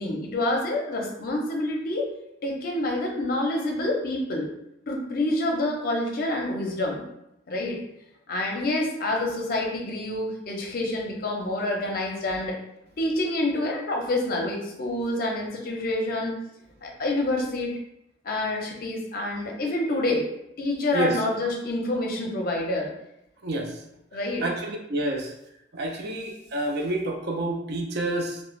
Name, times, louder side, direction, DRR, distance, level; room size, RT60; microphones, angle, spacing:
voice 1, 0.0-2.1 2.4-4.5 4.9-7.0 7.5-7.8 8.3-12.6 13.0-16.4 16.8-17.7 18.2-20.3 20.6-22.9 24.1-24.4, left 1 dB, 50° left, 0 dB, 0.6 m, -27 dB
voice 2, 24.4-25.3 25.7-28.4, right 1 dB, 55° right, 2 dB, 0.5 m, -28 dB
2.4 x 2.1 x 3.1 m, 0.82 s
head